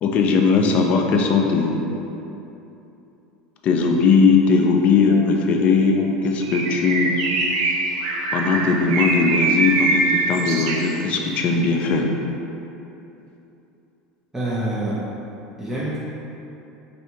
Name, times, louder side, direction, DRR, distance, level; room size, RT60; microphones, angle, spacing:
voice 1, 0.0-1.9 3.6-7.2 8.3-12.1, left 4 dB, 50° left, 2 dB, 0.4 m, -19 dB
Bird, 6.4-11.3, right 2 dB, 75° right, 0.4 m, -23 dB
voice 2, 14.3-15.0 15.6-16.0, right 1 dB, 10° right, -8 dB, 0.5 m, -26 dB
3.2 x 2.7 x 2.8 m, 2.9 s
hypercardioid pair, 90°, 3 cm